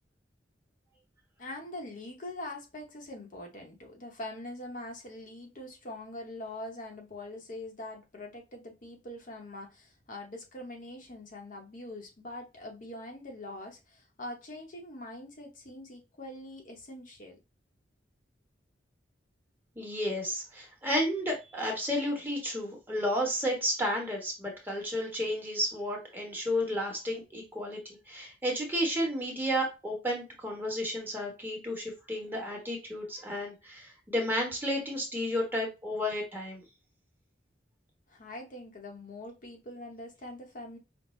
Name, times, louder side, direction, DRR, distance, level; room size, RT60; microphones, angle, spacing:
voice 1, 1.4-17.4 38.1-40.8, left 1 dB, 50° left, 0.9 m, -43 dB
voice 2, 19.8-27.8 28.1-36.6, equal, 10° right, 1.1 m, -32 dB
5.2 x 2.1 x 3.1 m
head